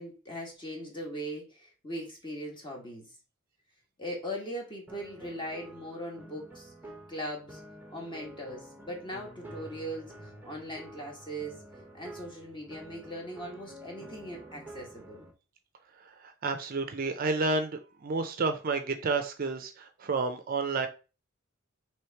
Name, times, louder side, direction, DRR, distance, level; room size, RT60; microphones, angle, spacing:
voice 1, 0.0-3.1 4.0-6.7 7.1-7.6 7.9-11.6 11.9-15.3, equal, 20° left, -1 dB, 1.2 m, -40 dB
sound 1, 4.9-15.3, right 1 dB, 10° right, 0.7 m, -49 dB
voice 2, 16.0-20.9, right 3 dB, 40° right, 7 dB, 0.4 m, -30 dB
3.1 x 3.1 x 4.4 m, 0.33 s
head